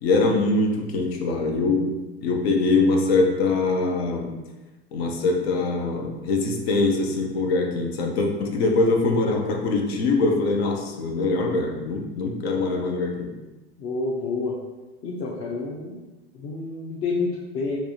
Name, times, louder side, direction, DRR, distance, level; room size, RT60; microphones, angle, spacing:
voice 1, 0.0-4.3 4.9-13.3, left 3 dB, 70° left, 2 dB, 0.8 m, -23 dB
voice 2, 13.8-14.6 15.0-16.0 16.3-17.8, left 3 dB, 40° left, -5 dB, 0.7 m, -28 dB
4.6 x 2.5 x 2.8 m, 1.1 s
hypercardioid pair, 90°, 32 cm